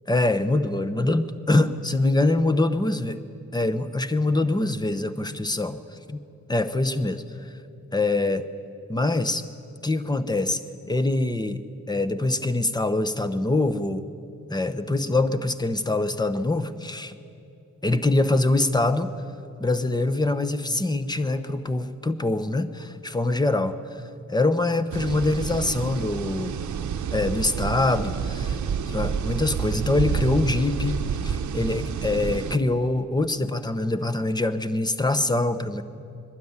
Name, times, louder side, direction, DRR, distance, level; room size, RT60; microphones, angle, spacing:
voice 1, 0.1-3.2 3.5-5.8 6.1-6.2 6.5-7.2 7.9-8.5 8.9-9.5 9.8-10.6 10.9-11.6 11.9-14.1 14.5-17.2 17.8-19.1 19.6-23.8 24.3-26.6 27.1-28.6 28.9-35.8, left 2 dB, 15° left, 11 dB, 0.9 m, -24 dB
sound 1, 24.9-32.6, right 7 dB, 65° right, 0.8 m, -29 dB
21.5 x 12.5 x 9.7 m, 2.6 s
cardioid pair, 85°, 31 cm